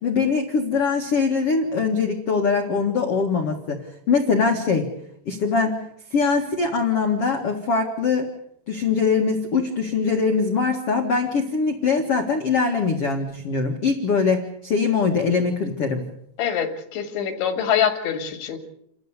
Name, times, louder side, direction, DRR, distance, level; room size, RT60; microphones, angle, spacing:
voice 1, 0.0-4.9 5.2-5.8 6.1-8.3 8.7-16.0, left 5 dB, 50° left, 3 dB, 1.8 m, -22 dB
voice 2, 16.4-18.6, left 8 dB, 85° left, 6 dB, 4.9 m, -24 dB
29.0 x 13.5 x 8.1 m, 0.75 s
omnidirectional pair, 5.2 m